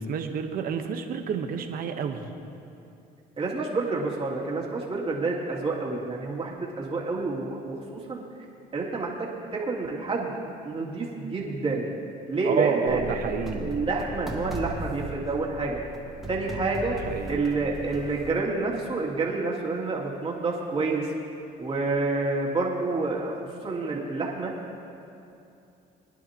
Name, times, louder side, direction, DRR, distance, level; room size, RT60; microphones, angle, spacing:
voice 1, 0.0-2.2 12.4-13.7 16.9-17.4, right 7 dB, 60° right, 6 dB, 1.1 m, -29 dB
voice 2, 3.4-8.2 8.7-10.4 10.6-11.9 12.3-13.2 13.6-15.8 16.3-17.0 17.3-21.1 21.6-23.4 23.6-24.5, right 3 dB, 30° right, -3 dB, 2.6 m, -28 dB
sound 1, 12.9-18.3, right 1 dB, ahead, 2.0 m, -38 dB
23.0 x 11.0 x 2.9 m, 2.7 s
cardioid pair, 110°, 17 cm